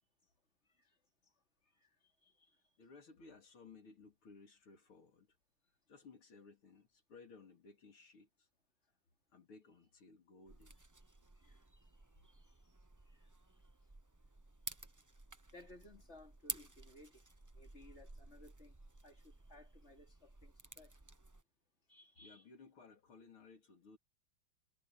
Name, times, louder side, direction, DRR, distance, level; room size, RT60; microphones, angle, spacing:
voice 1, 2.2-2.5 11.4-11.6 12.7-12.8 13.1-13.3 15.5-17.2 17.5-18.7 19.0-20.9 21.9-22.4, left 2 dB, 30° left, 3.2 m, -60 dB
voice 2, 2.8-5.3 5.7-8.5 9.3-10.8 22.2-24.0, left 4 dB, 85° left, 3.9 m, -59 dB
sound 1, 10.5-21.4, right 2 dB, 25° right, 0.4 m, -52 dB
omnidirectional pair, 2.3 m